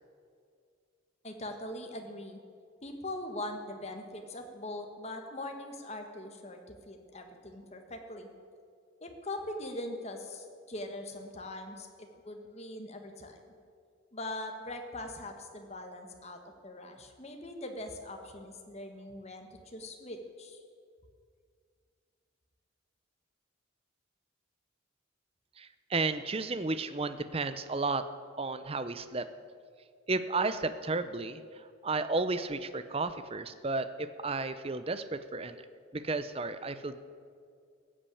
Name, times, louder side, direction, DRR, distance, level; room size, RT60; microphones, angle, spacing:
voice 1, 1.2-2.4 2.8-8.3 9.0-13.5 14.1-20.6, left 1 dB, 30° left, 4 dB, 1.5 m, -42 dB
voice 2, 25.6-28.0 28.4-29.3 30.1-35.6 35.9-37.0, right 3 dB, 30° right, 12 dB, 0.6 m, -33 dB
15.5 x 8.7 x 8.5 m, 2.2 s
head